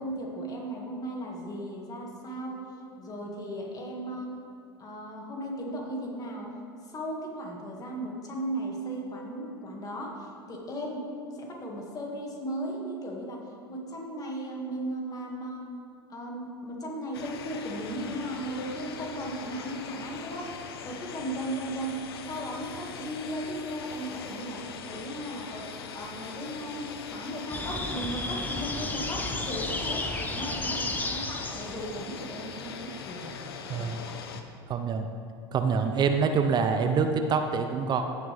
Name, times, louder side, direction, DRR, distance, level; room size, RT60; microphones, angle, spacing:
voice 1, 0.0-2.7 3.0-4.4 4.8-6.5 6.8-15.7 16.1-25.7 25.9-33.3 33.8-34.1, right 1 dB, 30° left, -1 dB, 2.1 m, -36 dB
sound 1, 17.1-34.4, left 6 dB, 75° left, 0.7 m, -41 dB
sound 2, 27.5-31.9, left 2 dB, 15° left, 0.9 m, -33 dB
voice 2, 33.7-34.0 34.7-35.1 35.5-38.1, right 5 dB, 35° right, 7 dB, 0.6 m, -26 dB
15.0 x 6.2 x 3.5 m, 2.3 s
hypercardioid pair, 85°, 13 cm